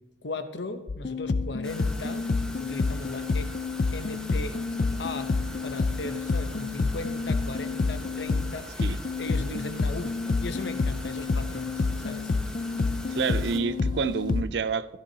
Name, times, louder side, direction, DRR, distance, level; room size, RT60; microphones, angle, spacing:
voice 1, 0.2-2.3 2.5-3.5 3.9-4.5 5.0-5.3 5.6-12.3, left 2 dB, 75° left, 9 dB, 0.9 m, -37 dB
sound 1, 0.9-14.4, left 4 dB, 45° left, 0.4 m, -29 dB
sound 2, 1.6-13.6, equal, 5° left, 1.0 m, -43 dB
sound 3, 4.1-14.4, equal, 25° right, 1.3 m, -49 dB
voice 2, 13.1-15.0, right 5 dB, 70° right, 15 dB, 0.5 m, -28 dB
15.5 x 11.0 x 2.9 m, 1.1 s
head